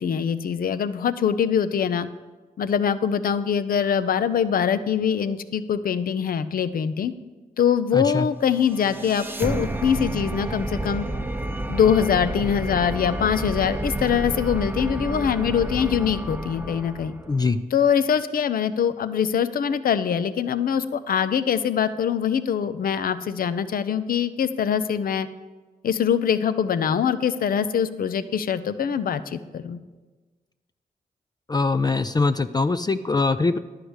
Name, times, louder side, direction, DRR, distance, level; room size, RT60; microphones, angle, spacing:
voice 1, 0.0-2.1 2.6-7.1 7.6-11.0 11.7-17.1 17.7-25.3 25.8-29.8, left 8 dB, 75° left, 13 dB, 0.6 m, -23 dB
voice 2, 7.9-8.3 17.3-17.6 31.5-33.6, left 3 dB, 25° left, 10 dB, 0.4 m, -22 dB
sound 1, 8.4-17.5, right 1 dB, 15° right, 0.7 m, -30 dB
11.0 x 4.8 x 8.0 m, 1.3 s
cardioid pair, 55°, 15 cm